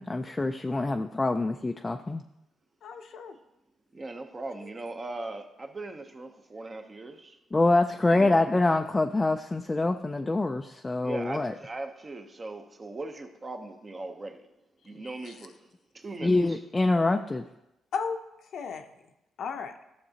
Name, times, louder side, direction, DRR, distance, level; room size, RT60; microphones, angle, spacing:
voice 1, 0.0-2.2 7.5-11.5 16.2-17.4, left 2 dB, 20° left, 0.4 m, -25 dB
voice 2, 2.8-3.4 4.6-4.7 15.0-15.4 17.9-18.2 18.5-18.9 19.4-19.7, left 5 dB, 65° left, 0.7 m, -35 dB
voice 3, 3.9-7.4 8.1-8.3 11.0-14.5 14.8-15.7 15.9-16.6, right 2 dB, 30° right, 0.8 m, -39 dB
12.5 x 6.6 x 2.9 m
cardioid pair, 90°, 0 cm